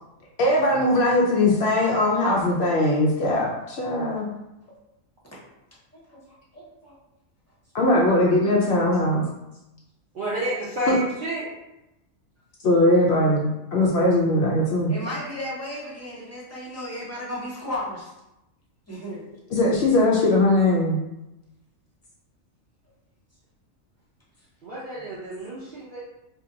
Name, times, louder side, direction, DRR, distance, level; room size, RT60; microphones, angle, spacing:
voice 1, 0.4-4.3 7.7-9.2 10.9-11.0 12.6-14.9 19.5-21.0, left 1 dB, 65° left, -3 dB, 0.7 m, -20 dB
voice 2, 5.9-7.0 14.9-18.1 18.9-19.2 25.0-25.1, left 1 dB, 15° left, -7 dB, 0.7 m, -35 dB
voice 3, 10.1-11.5 24.6-26.0, right 1 dB, 55° right, -6 dB, 0.6 m, -30 dB
2.8 x 2.1 x 3.7 m, 0.92 s
omnidirectional pair, 1.4 m